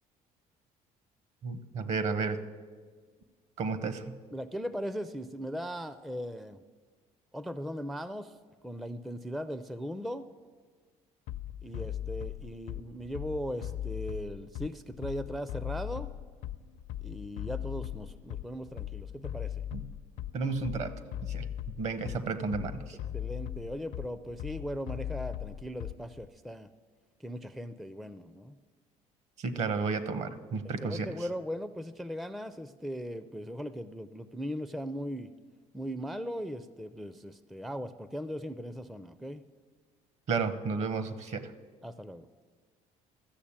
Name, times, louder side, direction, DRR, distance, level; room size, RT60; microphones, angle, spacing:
voice 1, 1.4-2.4 3.6-4.1 19.7-19.8 20.3-20.9 21.3-21.5 21.8-23.0 29.4-31.1 40.3-41.5, right 4 dB, 55° right, 12 dB, 1.0 m, -32 dB
voice 2, 4.3-6.6 7.3-8.3 8.6-10.3 11.6-16.1 17.0-19.6 23.1-26.7 27.2-28.5 30.8-35.3 35.7-39.4 41.8-42.3, equal, ahead, 13 dB, 0.4 m, -38 dB
Bass drum, 11.3-26.3, left 11 dB, 75° left, 0.6 m, -38 dB
13.5 x 6.8 x 8.7 m, 1.5 s
cardioid pair, 120°, 14 cm